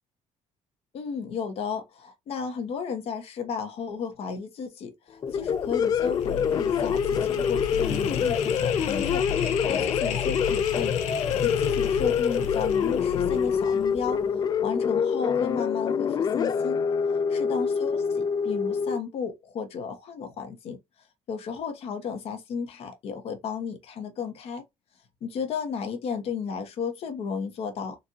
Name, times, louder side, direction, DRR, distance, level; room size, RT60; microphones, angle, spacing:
voice 1, 0.9-10.9 11.4-14.2 14.6-16.8 17.3-20.8 21.3-24.6 25.2-28.0, left 6 dB, 60° left, 1.2 m, -33 dB
sound 1, 5.2-19.0, left 6 dB, 35° left, 0.3 m, -26 dB
sound 2, 5.3-14.4, left 8 dB, 80° left, 0.8 m, -33 dB
4.1 x 2.6 x 2.7 m
cardioid pair, 140°, 12 cm